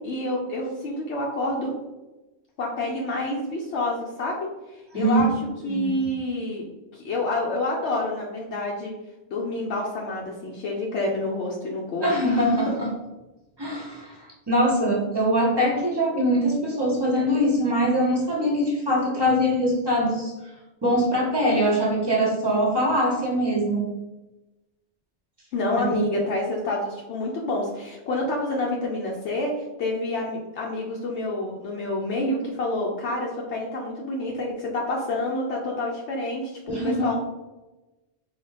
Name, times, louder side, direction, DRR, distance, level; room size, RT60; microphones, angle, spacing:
voice 1, 0.0-1.7 2.6-5.3 5.6-6.6 6.9-8.9 9.3-12.8 25.5-37.2, left 2 dB, 80° left, -2 dB, 0.9 m, -28 dB
voice 2, 12.0-12.9 13.6-20.3 20.8-23.9 25.9-26.1 36.7-37.1, equal, 25° right, -3 dB, 0.8 m, -23 dB
3.9 x 2.3 x 3.2 m, 1.1 s
omnidirectional pair, 1.2 m